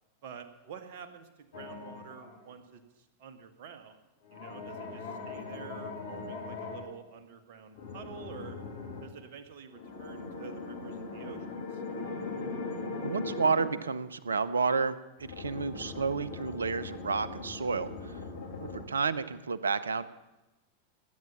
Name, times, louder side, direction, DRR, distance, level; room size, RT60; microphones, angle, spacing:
voice 1, 0.2-4.0 4.3-8.6 9.0-11.8, right 7 dB, 50° right, 7 dB, 1.9 m, -48 dB
sound 1, 1.5-2.4 4.2-6.9 7.7-9.1 9.7-13.8 15.2-18.8, left 3 dB, 60° left, 3.0 m, -40 dB
voice 2, 13.0-18.2 18.6-20.0, right 5 dB, 70° right, 16 dB, 0.8 m, -31 dB
20.0 x 9.6 x 7.2 m, 1.0 s
figure-of-eight pair, 90°, 0 cm